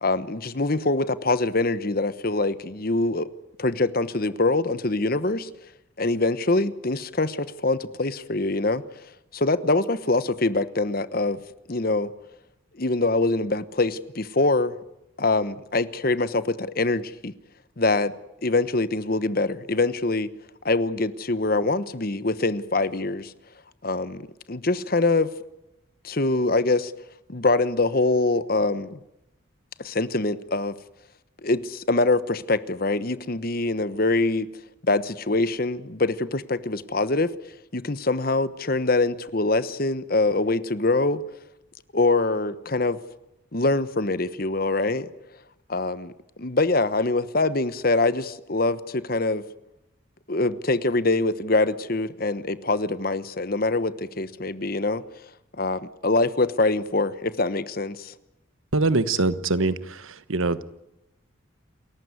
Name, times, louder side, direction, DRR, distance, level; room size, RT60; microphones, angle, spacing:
voice 1, 0.0-3.3 3.6-5.5 6.0-8.8 9.3-11.4 11.7-12.1 12.8-14.7 15.2-17.3 17.8-18.1 18.4-20.3 20.6-23.3 23.8-25.3 26.0-26.9 27.3-29.0 29.8-30.7 31.4-34.5 34.8-37.3 37.7-41.2 41.9-43.0 43.5-45.1 45.7-46.1 46.4-49.4 50.3-55.0 55.6-58.1, left 2 dB, 45° left, 14 dB, 1.1 m, -24 dB
voice 2, 58.7-60.6, right 3 dB, 80° right, 14 dB, 1.2 m, -23 dB
28.0 x 14.5 x 9.7 m, 0.89 s
head